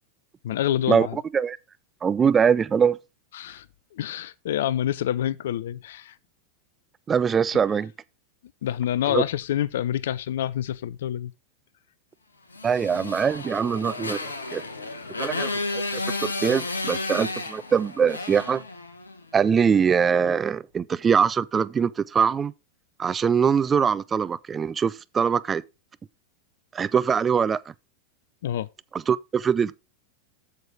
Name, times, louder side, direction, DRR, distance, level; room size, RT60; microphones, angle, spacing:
voice 1, 0.4-1.2 3.3-3.6 3.9-6.1 8.6-11.3 28.4-28.7, left 11 dB, 55° left, 0.5 m, -27 dB
voice 2, 2.0-3.0 7.1-7.9 9.1-9.2 12.6-14.2 14.5-14.6 15.2-18.6 19.3-22.5 23.0-25.6 26.7-27.6 28.9-29.8, right 6 dB, 20° right, 0.4 m, -23 dB
Motorcycle, 12.5-19.2, left 2 dB, 75° left, 1.1 m, -32 dB
8.0 x 6.7 x 4.6 m
figure-of-eight pair, 90°, 0 cm